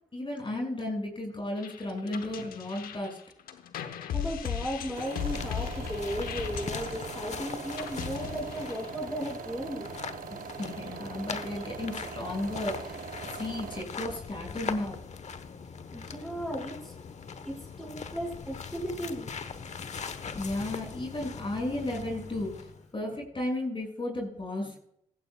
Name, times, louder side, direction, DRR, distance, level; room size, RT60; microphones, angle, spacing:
voice 1, 0.1-3.2 10.3-13.0 13.3-15.0 20.3-22.7 22.9-24.8, left 1 dB, 35° left, 1 dB, 6.2 m, -34 dB
sound 1, 1.6-9.1, left 8 dB, 90° left, 1.0 m, -37 dB
voice 2, 4.1-9.9 15.9-16.9 17.4-19.3, equal, ahead, -2 dB, 5.7 m, -36 dB
sound 2, 4.6-22.9, left 5 dB, 50° left, 1.1 m, -41 dB
sound 3, 4.9-13.8, right 8 dB, 75° right, 0.7 m, -42 dB
16.0 x 15.0 x 2.3 m, 0.70 s
supercardioid pair, 55°, 15 cm